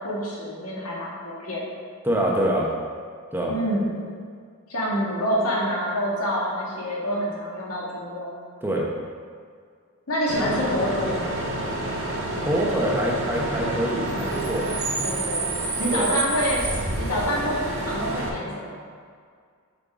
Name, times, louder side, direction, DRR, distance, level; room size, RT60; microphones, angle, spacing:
voice 1, 0.0-1.6 3.5-4.0 4.7-8.3 10.1-11.5 15.0-15.5 15.8-16.6 17.0-18.7, equal, 90° left, -5 dB, 1.8 m, -27 dB
voice 2, 2.0-2.7 3.3-3.5 8.6-8.9 12.4-14.7 15.9-16.1, right 1 dB, 10° right, -2 dB, 0.8 m, -25 dB
Bus / Idling / Screech, 10.3-18.3, right 2 dB, 65° right, 1.5 m, -28 dB
7.1 x 5.5 x 3.7 m, 2.1 s
head